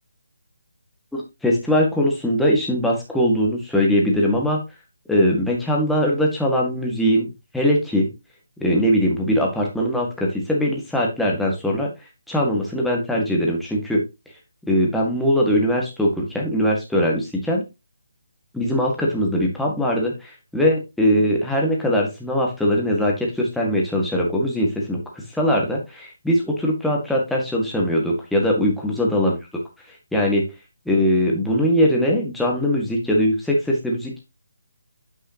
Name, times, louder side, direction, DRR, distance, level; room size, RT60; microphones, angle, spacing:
voice 1, 1.1-4.6 5.1-8.1 8.6-11.9 12.3-14.0 14.7-17.6 18.5-25.0 25.3-29.3 30.1-30.5 30.8-34.2, equal, ahead, -2 dB, 1.8 m, -21 dB
8.9 x 5.4 x 2.9 m, 0.24 s
figure-of-eight pair, 155°, 0 cm